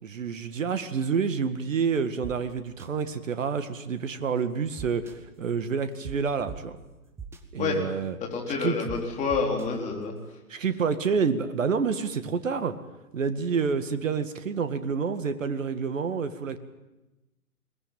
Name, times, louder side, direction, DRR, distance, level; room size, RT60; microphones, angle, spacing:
voice 1, 0.0-6.8 7.5-8.2 8.6-8.9 10.5-12.7 13.1-16.6, right 5 dB, 55° right, 10 dB, 2.1 m, -28 dB
sound 1, 2.2-2.3 2.8-2.9 4.8-5.1 6.0-6.1 6.5-6.6 7.2-7.4 8.9-9.0 9.3-9.7, right 6 dB, 5° right, 1.1 m, -39 dB
voice 2, 8.2-10.1, left 5 dB, 15° left, 0 dB, 4.2 m, -28 dB
22.0 x 20.5 x 9.1 m, 1.0 s
figure-of-eight pair, 130°, 45 cm